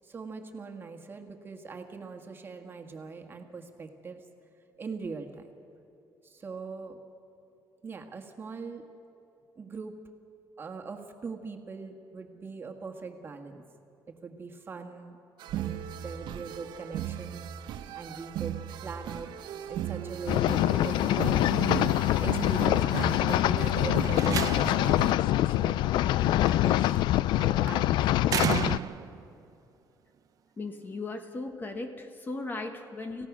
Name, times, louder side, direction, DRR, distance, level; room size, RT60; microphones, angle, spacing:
voice 1, 0.0-4.2 4.8-5.5 6.2-7.0 7.8-8.8 9.5-9.9 10.6-13.6 14.1-15.2 15.5-19.3 19.7-27.0 27.3-28.3, right 4 dB, 30° right, 4 dB, 1.7 m, -42 dB
sound 1, 15.4-25.1, right 10 dB, 80° right, 0.9 m, -36 dB
sound 2, 20.3-28.8, left 14 dB, 80° left, 0.4 m, -25 dB
Slam, 23.9-25.0 26.5-26.9 28.3-29.2, right 9 dB, 50° right, 0.7 m, -32 dB
voice 2, 30.6-33.3, left 3 dB, 25° left, 6 dB, 1.4 m, -37 dB
28.0 x 16.0 x 6.1 m, 2.8 s
cardioid pair, 135°, 8 cm